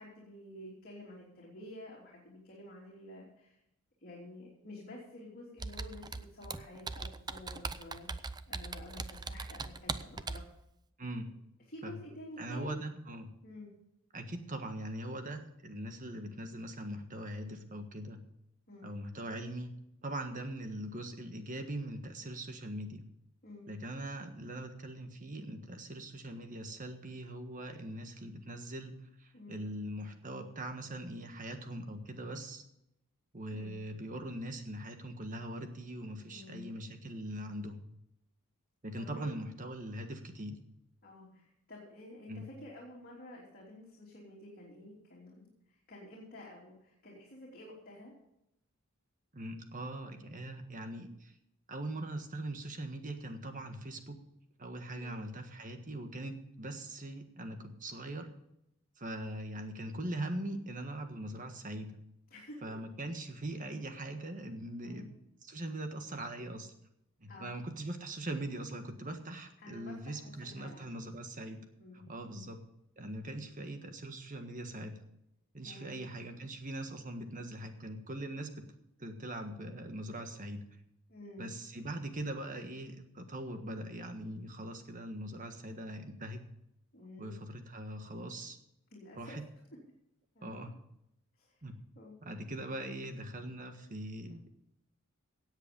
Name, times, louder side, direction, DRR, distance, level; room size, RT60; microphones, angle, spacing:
voice 1, 0.0-3.6 4.0-10.4 11.3-11.4 11.7-12.8 13.4-13.7 18.7-18.9 23.4-23.7 29.3-29.6 33.5-33.8 36.2-36.7 38.9-39.3 41.0-48.1 54.9-55.2 62.3-62.6 64.8-65.1 67.3-67.6 69.6-70.9 71.8-72.5 75.6-76.0 81.1-81.5 86.9-87.3 88.9-89.4 90.3-90.6 91.4-91.6 91.9-92.1, left 1 dB, 45° left, -5 dB, 3.2 m, -50 dB
Computer keyboard, 5.6-10.5, right 4 dB, 20° right, 0.5 m, -40 dB
voice 2, 11.0-11.3 11.8-12.0 12.4-13.3 14.1-18.3 18.8-19.7 20.0-23.0 23.7-32.6 33.3-37.8 38.8-40.6 42.3-42.5 49.3-51.3 51.7-54.2 54.6-58.3 59.0-62.0 62.6-65.1 65.4-66.7 67.2-71.6 71.9-72.6 73.0-75.0 75.5-78.7 79.0-80.6 81.4-86.4 87.2-88.6 89.2-89.4 90.4-90.7 91.6-91.8 92.2-94.5, right 1 dB, 40° right, 6 dB, 1.5 m, -41 dB
17.0 x 8.2 x 5.3 m, 0.81 s
head